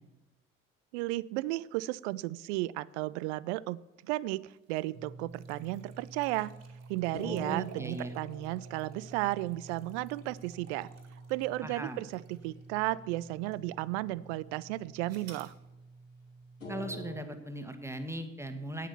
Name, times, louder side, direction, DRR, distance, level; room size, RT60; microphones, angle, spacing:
voice 1, 0.9-6.5 6.9-10.9 11.3-15.5, right 18 dB, 65° right, 21 dB, 0.5 m, -34 dB
sound 1, 4.6-13.0 13.5-13.6 15.1-15.6, right 5 dB, 45° right, 2.1 m, -58 dB
sound 2, 4.9-17.2, right 2 dB, 85° left, 3.0 m, -48 dB
voice 2, 7.2-8.1 11.6-12.0 16.7-18.9, right 1 dB, 5° right, 7 dB, 1.5 m, -38 dB
9.0 x 8.2 x 7.0 m, 1.0 s
figure-of-eight pair, 50°, 37 cm